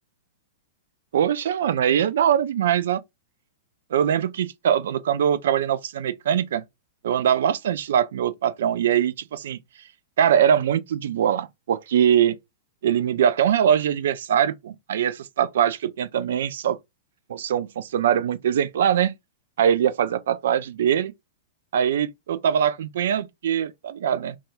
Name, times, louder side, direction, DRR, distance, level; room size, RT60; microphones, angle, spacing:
voice 1, 1.1-3.0 3.9-6.6 7.0-9.6 10.2-12.4 12.8-16.8 17.3-19.1 19.6-21.1 21.7-24.4, right 9 dB, 55° right, 0.3 m, -22 dB
2.6 x 2.3 x 2.5 m
figure-of-eight pair, 100°, 0 cm